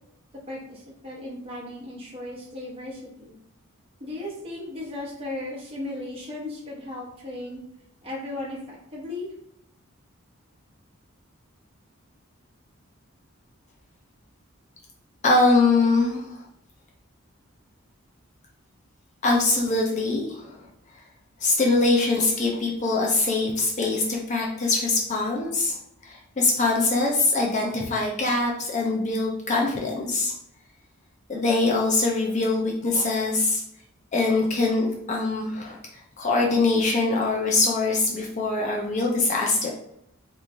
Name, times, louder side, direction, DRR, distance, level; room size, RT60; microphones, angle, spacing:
voice 1, 0.5-3.3 4.0-7.6 8.0-9.3, left 2 dB, 25° right, -5 dB, 1.0 m, -36 dB
voice 2, 15.2-16.4 19.2-20.6 21.4-25.8 26.0-30.3 31.3-33.6 34.1-35.8 36.2-39.7, left 3 dB, 35° left, -2 dB, 0.4 m, -23 dB
3.0 x 2.5 x 3.5 m, 0.77 s
head